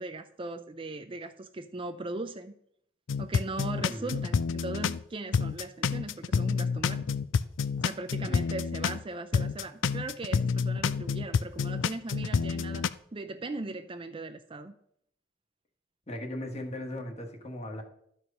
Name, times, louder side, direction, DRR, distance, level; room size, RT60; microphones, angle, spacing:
voice 1, 0.0-2.5 3.2-7.2 7.8-14.8, right 2 dB, 25° right, 8 dB, 0.5 m, -39 dB
sound 1, 3.1-5.0 5.3-9.0 9.3-12.9, left 5 dB, 70° left, 0.4 m, -28 dB
voice 2, 3.9-4.2 8.3-8.4 16.1-17.8, left 1 dB, 35° left, 3 dB, 1.5 m, -38 dB
12.5 x 4.7 x 5.3 m, 0.70 s
head